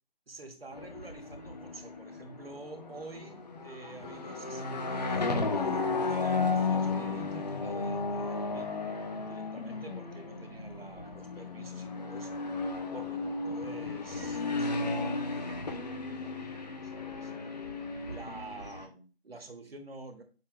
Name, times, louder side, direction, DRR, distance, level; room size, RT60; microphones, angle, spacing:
voice 1, 0.3-8.7 9.2-12.4 12.9-17.3 18.1-20.2, right 3 dB, 65° right, 4 dB, 1.9 m, -48 dB
sound 1, 0.7-18.9, left 3 dB, 40° left, 1.3 m, -34 dB
8.8 x 6.5 x 2.2 m, 0.36 s
figure-of-eight pair, 155°, 32 cm